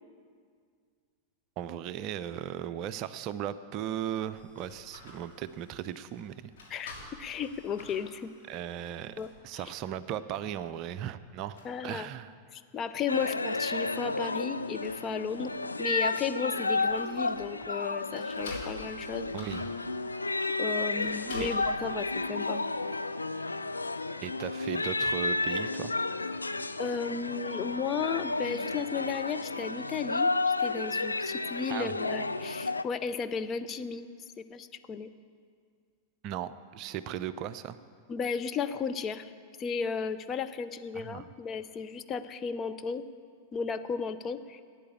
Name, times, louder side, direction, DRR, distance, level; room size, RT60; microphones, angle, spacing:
voice 1, 1.6-6.5 8.5-9.1 9.4-12.3 19.3-19.7 21.4-21.5 24.2-25.9 31.7-31.9 36.2-37.8 40.9-41.3, right 10 dB, 40° right, 13 dB, 0.5 m, -37 dB
sound 1, 4.3-9.5 10.1-10.2 10.8-11.2 11.5-11.7 14.3-15.8 16.1-17.6 18.1-21.7, left 2 dB, 60° left, 3.2 m, -49 dB
voice 2, 6.7-8.3 9.2-9.6 11.6-12.1 12.5-19.3 20.6-22.6 26.8-34.1 34.4-35.1 38.1-39.3 39.6-43.0 43.5-44.6, left 6 dB, 30° left, 10 dB, 0.6 m, -34 dB
sound 2, 13.1-32.8, left 3 dB, 80° left, 0.4 m, -32 dB
13.0 x 9.2 x 8.4 m, 2.1 s
figure-of-eight pair, 90°, 0 cm